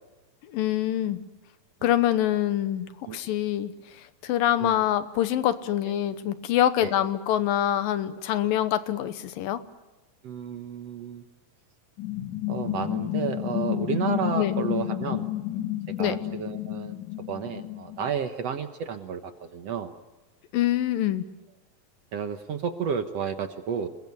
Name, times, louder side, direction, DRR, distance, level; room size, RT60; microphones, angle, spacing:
voice 1, 0.5-1.2 1.8-3.7 4.2-9.6 14.3-14.6 16.0-16.2 20.5-21.3, left 12 dB, 85° left, 12 dB, 2.8 m, -25 dB
voice 2, 10.2-11.2 12.5-15.7 16.0-17.0 17.3-19.9 22.1-23.9, right 7 dB, 60° right, 7 dB, 1.9 m, -32 dB
sound 1, 12.0-18.1, left 14 dB, 70° left, 3.5 m, -31 dB
28.5 x 21.5 x 9.6 m, 1.1 s
omnidirectional pair, 4.0 m